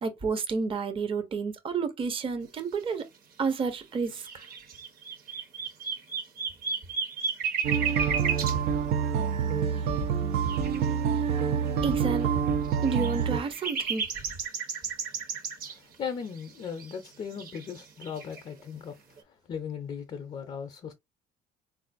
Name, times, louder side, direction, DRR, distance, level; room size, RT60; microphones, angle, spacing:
voice 1, 0.0-3.0 3.4-4.5 11.8-12.3 12.8-14.1, right 5 dB, 30° right, 0.6 m, -30 dB
sound 1, 3.7-3.8 4.1-8.6 10.5-10.9 11.7-11.8 12.1-12.2 12.6-15.8 16.2-17.1 17.3-18.4, right 6 dB, 60° right, 1.0 m, -33 dB
sound 2, 7.6-13.4, right 7 dB, 75° right, 0.6 m, -27 dB
voice 2, 15.7-18.9 19.5-20.9, left 7 dB, 35° left, 0.5 m, -37 dB
3.7 x 2.4 x 2.5 m
cardioid pair, 110°, 17 cm